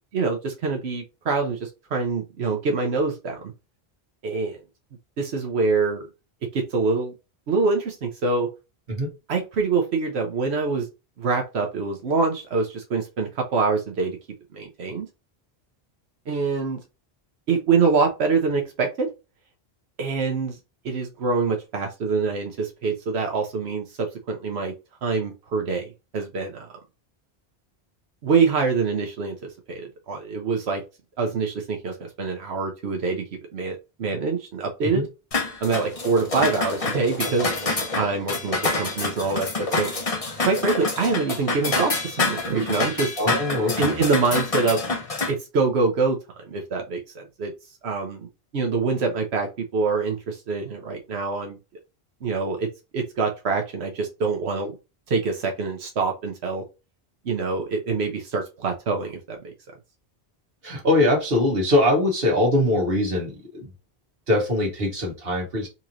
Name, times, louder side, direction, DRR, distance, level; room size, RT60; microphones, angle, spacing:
voice 1, 0.1-3.4 4.2-4.6 5.2-6.0 6.5-7.1 7.5-8.5 9.3-10.9 11.2-14.2 14.5-15.1 16.3-16.8 17.5-19.1 20.0-20.6 20.8-24.7 25.0-26.7 28.2-30.8 31.2-33.2 33.5-35.1 35.6-37.5 37.9-39.9 40.4-43.2 43.8-44.8 45.3-46.2 46.5-47.5 47.8-48.3 48.5-51.6 52.2-52.7 52.9-54.7 55.1-56.6 57.2-59.5, right 4 dB, 85° right, 1.1 m, -25 dB
sound 1, 35.3-45.3, left 3 dB, 35° left, 0.9 m, -27 dB
voice 2, 43.2-44.0 60.6-63.7 64.3-65.7, left 1 dB, 65° right, 1.6 m, -22 dB
4.2 x 3.0 x 2.5 m
omnidirectional pair, 1.1 m